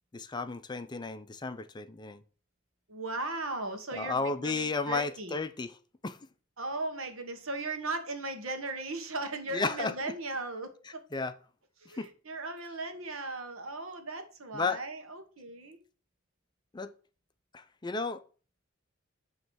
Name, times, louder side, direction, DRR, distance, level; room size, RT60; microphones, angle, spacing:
voice 1, 0.1-2.2 3.9-5.7 6.0-6.2 9.5-9.9 11.1-11.3 12.0-12.1 14.5-14.8 16.7-16.9 17.5-18.2, left 4 dB, 20° left, 0.5 m, -33 dB
voice 2, 2.9-5.4 6.6-11.0 11.8-15.8, right 2 dB, 80° right, 1.4 m, -37 dB
9.0 x 3.2 x 6.2 m
head